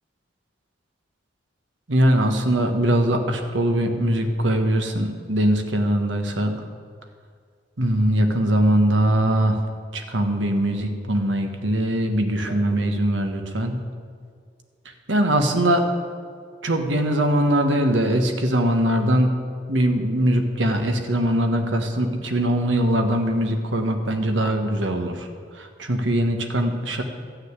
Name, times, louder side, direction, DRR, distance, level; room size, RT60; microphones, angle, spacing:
voice 1, 1.9-6.6 7.8-9.6 9.9-13.8 14.8-15.8 16.6-19.3 19.7-25.3 25.5-27.0, right 1 dB, 75° right, 5 dB, 1.4 m, -21 dB
13.5 x 6.5 x 9.7 m, 2.1 s
head